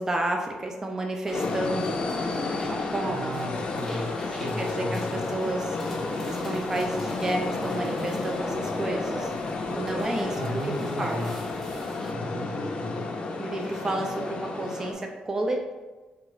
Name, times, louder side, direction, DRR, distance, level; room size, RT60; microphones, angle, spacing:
voice 1, 0.0-2.0 2.7-3.3 4.6-5.8 6.3-9.3 9.7-11.4 13.4-15.7, right 1 dB, 20° right, 2 dB, 0.3 m, -31 dB
sound 1, 1.2-12.1, equal, ahead, 0.7 m, -39 dB
sound 2, 1.3-14.9, left 3 dB, 40° left, 0.5 m, -32 dB
voice 2, 3.0-5.3 10.3-11.3 12.1-13.1, equal, 80° right, -1 dB, 0.8 m, -35 dB
4.8 x 2.3 x 3.0 m, 1.2 s
cardioid pair, 140°, 3 cm